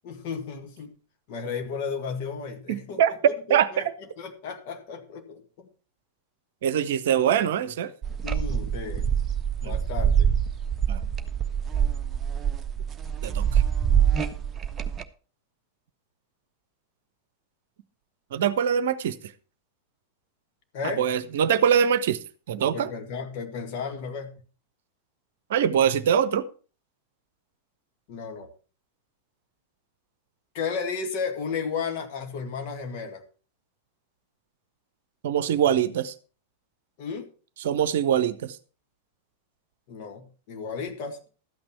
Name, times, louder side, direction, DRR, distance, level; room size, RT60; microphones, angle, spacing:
voice 1, 0.0-0.9 1.3-3.0 3.5-5.7 8.2-9.1 9.6-10.3 20.7-21.1 22.7-24.3 28.1-28.5 30.5-33.2 37.0-37.3 39.9-41.2, left 5 dB, 45° left, 5 dB, 1.9 m, -33 dB
voice 2, 2.7-3.1 3.5-3.8 6.6-7.9 9.6-9.7 10.9-11.0 13.2-13.6 18.3-19.2 21.0-22.2 22.5-22.9 25.5-26.5 35.2-36.1 37.6-38.6, right 8 dB, 55° right, 15 dB, 0.8 m, -23 dB
sound 1, 8.0-15.0, right 8 dB, 20° right, 0.9 m, -25 dB
13.0 x 8.8 x 4.5 m, 0.38 s
figure-of-eight pair, 90°, 0 cm